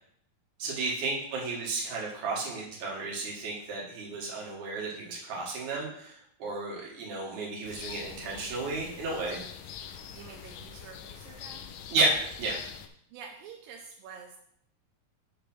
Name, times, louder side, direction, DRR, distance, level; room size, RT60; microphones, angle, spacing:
voice 1, 0.6-9.4 11.9-12.6, right 2 dB, 60° right, -3 dB, 2.7 m, -32 dB
sound 1, 7.6-12.9, left 8 dB, 90° left, 1.6 m, -44 dB
voice 2, 10.1-11.7 13.1-14.4, right 6 dB, 85° right, 1 dB, 2.4 m, -48 dB
7.0 x 3.2 x 6.1 m, 0.69 s
omnidirectional pair, 4.0 m